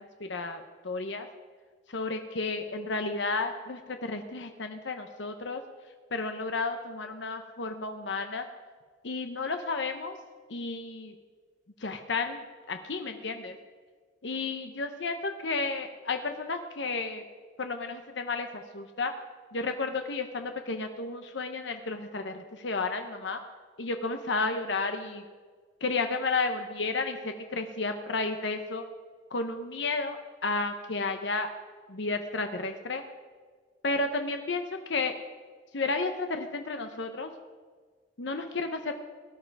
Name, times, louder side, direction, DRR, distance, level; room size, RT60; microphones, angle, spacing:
voice 1, 0.2-1.3 1.9-5.6 6.1-8.4 9.0-10.1 10.5-11.1 11.8-12.4 12.7-13.6 14.2-17.2 17.6-19.1 19.5-23.4 23.8-25.2 25.8-28.8 29.3-30.2 30.4-31.5 31.9-33.0 33.8-34.6 34.9-35.2 35.7-37.3 38.2-38.9, left 3 dB, 70° left, 6 dB, 0.9 m, -32 dB
18.5 x 12.0 x 4.8 m, 1.5 s
head